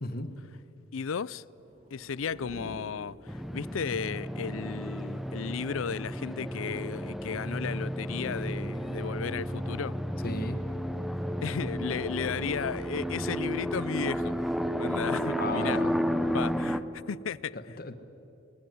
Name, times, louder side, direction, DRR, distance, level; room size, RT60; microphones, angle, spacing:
voice 1, 0.0-0.3 10.2-10.6 15.4-15.9 17.8-18.0, left 2 dB, 45° left, 1.4 m, -34 dB
voice 2, 0.9-1.4 1.9-10.0 11.4-15.8 16.3-16.8 17.1-17.6, left 6 dB, 80° left, 0.5 m, -34 dB
sound 1, 1.4-4.1, right 1 dB, 35° right, 1.3 m, -48 dB
sound 2, 3.3-16.8, equal, ahead, 0.7 m, -32 dB
22.0 x 21.0 x 9.5 m
head